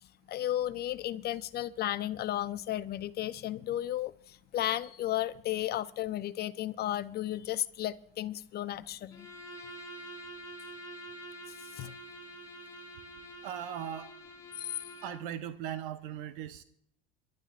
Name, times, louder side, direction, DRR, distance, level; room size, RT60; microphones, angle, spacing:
voice 1, 0.3-9.3 11.8-11.9 14.6-14.7, left 13 dB, 35° left, 0.6 m, -34 dB
Bowed string instrument, 9.1-15.3, equal, 10° left, 3.4 m, -47 dB
voice 2, 13.4-14.1 15.0-16.6, right 10 dB, 65° right, 0.9 m, -38 dB
28.5 x 12.0 x 2.5 m
hypercardioid pair, 105°, 29 cm